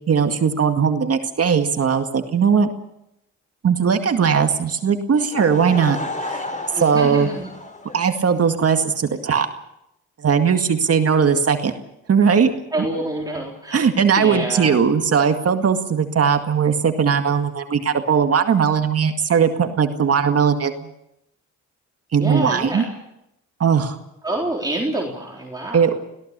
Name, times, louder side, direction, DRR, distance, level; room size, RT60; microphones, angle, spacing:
voice 1, 0.1-2.7 3.6-6.0 6.2-6.4 6.8-7.3 7.9-9.5 10.2-11.7 12.1-12.5 12.8-12.9 13.7-20.9 22.1-22.9 23.6-24.0 25.7-25.9, right 6 dB, 50° right, 6 dB, 2.1 m, -18 dB
Laughter / Crowd, 5.1-8.6, left 2 dB, 25° left, 4.4 m, -32 dB
voice 2, 6.8-7.5 12.7-13.9 14.2-14.8 22.2-22.9 24.2-25.8, right 1 dB, 15° right, -2 dB, 4.0 m, -27 dB
26.0 x 17.5 x 6.8 m, 0.84 s
cardioid pair, 80°, 30 cm